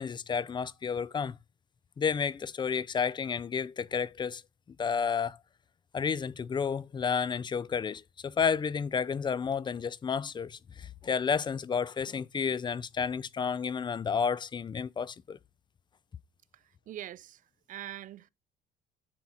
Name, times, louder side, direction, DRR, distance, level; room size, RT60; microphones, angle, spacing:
voice 1, 0.0-1.4 2.0-4.4 4.8-5.4 5.9-15.4, left 6 dB, 25° left, 0.4 m, -31 dB
voice 2, 16.5-18.3, right 12 dB, 50° right, 0.5 m, -44 dB
9.6 x 4.4 x 4.3 m
cardioid pair, 110°, 17 cm